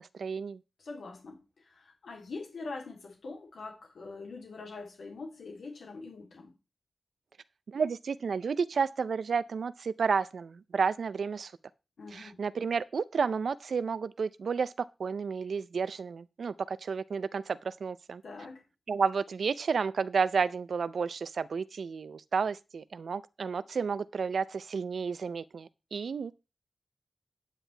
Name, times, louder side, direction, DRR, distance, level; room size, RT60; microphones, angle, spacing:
voice 1, 0.0-0.6 7.7-11.5 12.1-18.2 18.9-26.3, right 5 dB, 70° right, 0.5 m, -31 dB
voice 2, 0.8-6.5 12.0-12.4 18.2-18.6, left 3 dB, 80° left, 3.1 m, -43 dB
9.7 x 9.2 x 3.4 m
wide cardioid pair, 165°, 0 cm